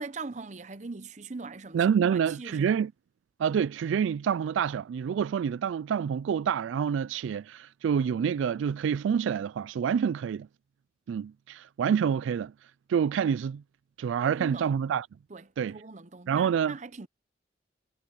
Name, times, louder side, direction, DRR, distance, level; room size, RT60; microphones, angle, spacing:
voice 1, 0.0-2.8 14.2-14.7 15.3-17.1, right 3 dB, 40° right, 0.7 m, -41 dB
voice 2, 1.7-2.9 3.4-10.5 11.1-12.5 12.9-13.6 14.0-15.1 15.6-15.8 16.3-16.8, right 7 dB, 85° right, 0.3 m, -27 dB
head